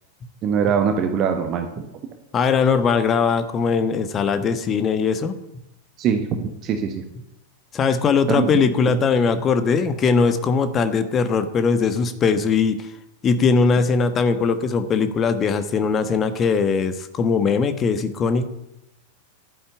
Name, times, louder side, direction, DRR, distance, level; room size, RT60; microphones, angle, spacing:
voice 1, 0.4-1.8 6.0-7.0 8.3-8.5, right 7 dB, 35° right, 5 dB, 1.5 m, -22 dB
voice 2, 2.3-5.3 7.7-12.9 13.2-18.4, left 5 dB, 25° left, 10 dB, 1.3 m, -20 dB
12.0 x 10.5 x 8.0 m, 0.82 s
figure-of-eight pair, 90°, 0 cm